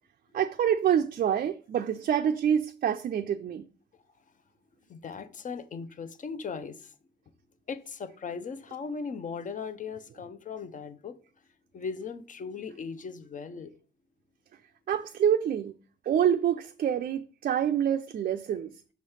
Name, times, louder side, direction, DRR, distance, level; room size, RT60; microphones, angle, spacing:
voice 1, 0.3-3.7 14.9-15.8 16.0-18.7, right 9 dB, 45° right, 0.4 m, -26 dB
voice 2, 4.9-6.9 7.7-11.2 11.7-13.7, left 5 dB, 40° left, 0.7 m, -38 dB
5.6 x 3.1 x 5.5 m
cardioid pair, 90°, 20 cm